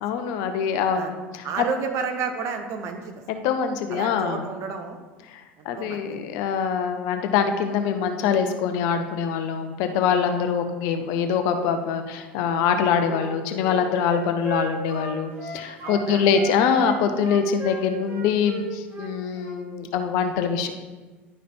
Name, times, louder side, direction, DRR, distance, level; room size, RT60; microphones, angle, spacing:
voice 1, 0.0-1.5 3.3-4.5 5.3-20.7, left 6 dB, 60° left, 7 dB, 0.8 m, -24 dB
voice 2, 1.4-3.1 3.9-5.0 5.6-6.0 15.8-16.3 16.7-16.9, right 5 dB, 50° right, 5 dB, 1.2 m, -31 dB
Wind instrument woodwind instrument, 12.6-16.0 16.3-19.6, right 1 dB, 30° right, 2.7 m, -36 dB
11.0 x 5.1 x 4.4 m, 1.3 s
hypercardioid pair, 75°, 7 cm